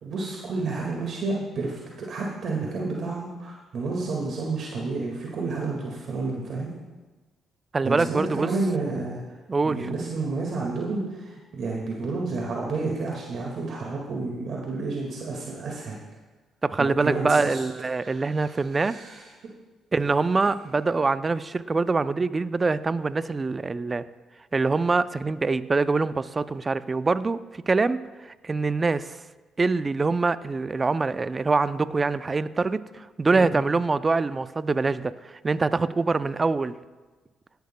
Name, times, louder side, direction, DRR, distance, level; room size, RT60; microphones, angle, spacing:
voice 1, 0.0-6.7 7.8-9.2 9.6-16.0 16.8-17.6 18.0-19.2 33.3-33.6, right 3 dB, 65° right, -2 dB, 1.9 m, -30 dB
voice 2, 7.7-8.5 9.5-9.9 16.6-19.0 19.9-24.0 24.5-27.4 27.7-29.2 29.6-36.7, right 3 dB, 30° right, 14 dB, 0.5 m, -24 dB
17.0 x 11.5 x 2.2 m, 1.3 s
supercardioid pair, 65°, 0 cm